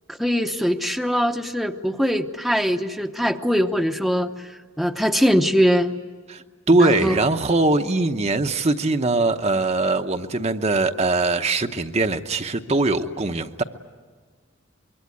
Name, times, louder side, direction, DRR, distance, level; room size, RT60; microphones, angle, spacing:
voice 1, 0.1-4.5 4.8-5.9 6.8-7.2, equal, ahead, 5 dB, 0.8 m, -22 dB
voice 2, 6.3-13.6, right 2 dB, 35° right, 7 dB, 0.9 m, -21 dB
25.0 x 23.0 x 9.7 m, 1.5 s
head